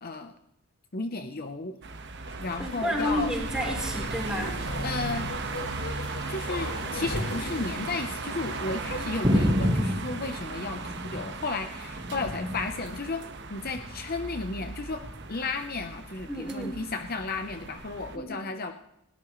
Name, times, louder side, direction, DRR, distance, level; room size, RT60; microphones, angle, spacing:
voice 1, 0.0-0.3 0.9-1.8 2.4-3.3 4.8-5.3 6.3-13.2 13.5-15.0 15.3-18.7, left 3 dB, 40° left, 7 dB, 0.8 m, -33 dB
sound 1, 1.8-18.2, right 3 dB, 50° right, 1.4 m, -37 dB
Bark, 2.2-9.8 10.1-10.2, left 2 dB, 85° left, 3.2 m, -39 dB
voice 2, 2.6-4.6 16.3-16.7 18.2-18.3, equal, 5° right, -2 dB, 4.0 m, -31 dB
sound 2, 9.2-11.5 11.8-12.8 13.6-14.0 15.0-15.2, equal, 20° right, 1.8 m, -28 dB
20.0 x 17.5 x 3.2 m, 0.84 s
head